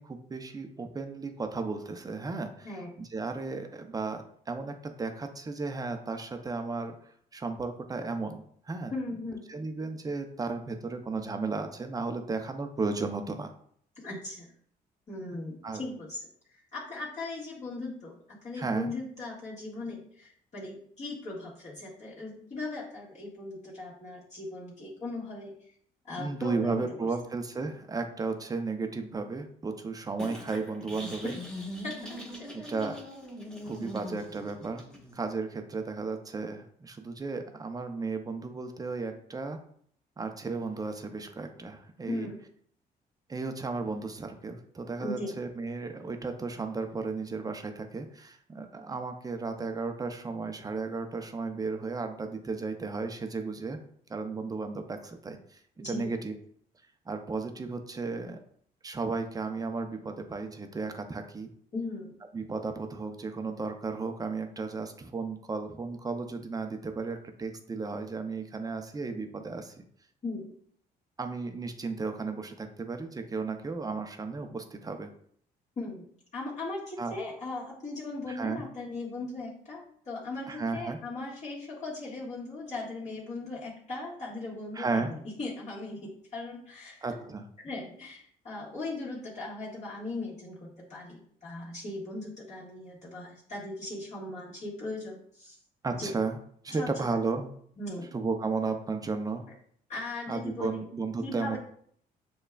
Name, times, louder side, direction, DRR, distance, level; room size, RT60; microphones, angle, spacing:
voice 1, 0.0-7.0 7.3-8.9 9.5-13.5 15.6-15.8 18.6-18.9 26.2-31.3 32.5-33.0 33.6-34.8 35.1-39.6 40.2-42.3 43.3-53.8 54.1-55.6 55.9-56.3 57.1-58.4 58.8-61.5 62.3-69.8 71.2-75.1 77.0-77.1 78.3-78.6 80.5-81.0 84.7-85.1 87.0-87.5 95.8-96.4 96.6-97.5 98.1-99.4 100.3-101.6, right 4 dB, 20° right, 7 dB, 0.5 m, -34 dB
voice 2, 8.9-9.5 14.0-14.5 15.1-16.3 16.7-25.5 26.0-26.8 31.2-31.4 31.8-32.7 42.1-42.4 45.0-45.3 55.8-56.1 61.7-62.1 70.2-70.5 75.8-76.0 76.3-87.2 87.6-95.6 96.0-96.1 96.8-96.9 97.8-98.1 99.9-100.9 101.2-101.6, left 2 dB, 45° left, -9 dB, 1.6 m, -38 dB
sound 1, 30.2-35.2, left 1 dB, 5° left, 1.1 m, -42 dB
6.6 x 2.3 x 2.3 m, 0.62 s
cardioid pair, 85°, 17 cm